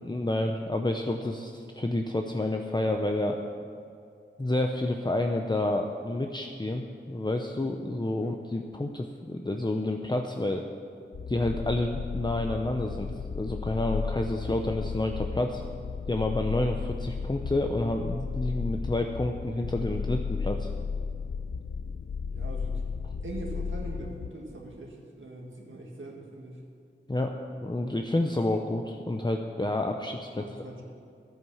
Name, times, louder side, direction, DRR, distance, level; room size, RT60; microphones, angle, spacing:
voice 1, 0.0-3.4 4.4-10.6 11.3-15.6 16.1-20.7 27.1-27.4 27.6-30.4, left 1 dB, 20° left, 3 dB, 0.7 m, -29 dB
sound 1, 11.1-24.3, left 5 dB, 90° left, 0.5 m, -34 dB
voice 2, 22.3-22.9 23.2-26.6 30.3-30.8, right 2 dB, 75° right, -2 dB, 1.8 m, -42 dB
10.5 x 9.9 x 7.2 m, 2.4 s
wide cardioid pair, 40°, 20 cm